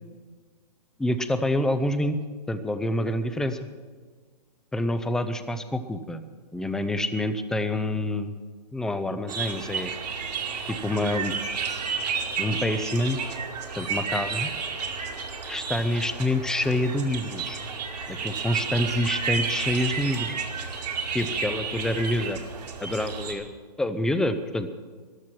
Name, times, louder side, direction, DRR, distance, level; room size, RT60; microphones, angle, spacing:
voice 1, 1.0-2.2 2.5-3.6 4.7-6.2 6.5-8.3 8.7-9.9 10.7-11.3 12.4-13.4 13.8-14.5 15.4-17.6 18.1-20.3 21.1-22.4 22.8-23.5 23.8-24.7, left 1 dB, 5° left, 10 dB, 0.5 m, -27 dB
sound 1, 9.3-23.3, right 5 dB, 75° right, 2.3 m, -31 dB
14.5 x 12.0 x 6.1 m, 1.5 s
hypercardioid pair, 140°, 21 cm